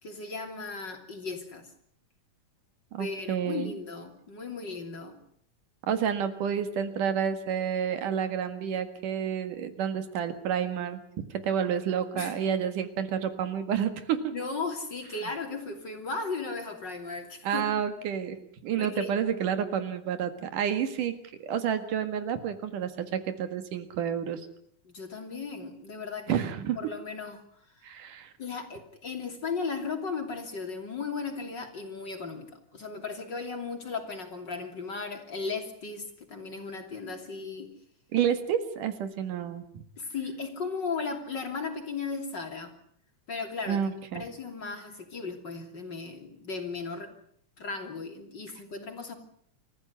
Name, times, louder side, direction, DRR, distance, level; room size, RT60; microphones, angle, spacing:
voice 1, 0.0-1.7 3.0-5.2 12.1-12.3 14.3-17.9 18.8-19.1 24.8-26.4 26.8-27.4 28.4-37.7 40.0-42.8 43.3-43.8 44.1-47.1 47.6-49.1, left 4 dB, 35° left, 5 dB, 3.4 m, -36 dB
voice 2, 2.9-3.7 5.9-11.0 11.4-14.2 17.4-18.4 18.6-21.1 21.4-24.4 26.3-26.8 27.8-28.3 38.1-39.6 43.7-44.2, right 8 dB, 85° right, 10 dB, 3.4 m, -29 dB
27.0 x 14.5 x 9.5 m, 0.65 s
omnidirectional pair, 3.6 m